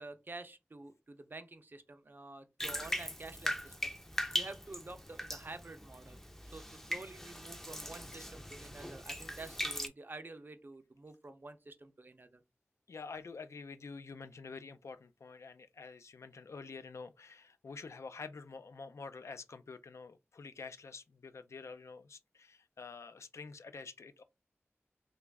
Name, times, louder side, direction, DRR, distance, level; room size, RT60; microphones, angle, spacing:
voice 1, 0.0-4.0 4.3-6.2 6.4-12.4, right 2 dB, 45° right, 0.5 m, -49 dB
Bathtub (filling or washing), 2.6-9.9, equal, 10° left, 0.4 m, -40 dB
voice 2, 12.9-24.2, left 4 dB, 85° left, 0.3 m, -48 dB
3.0 x 2.3 x 3.3 m
wide cardioid pair, 70°, 5 cm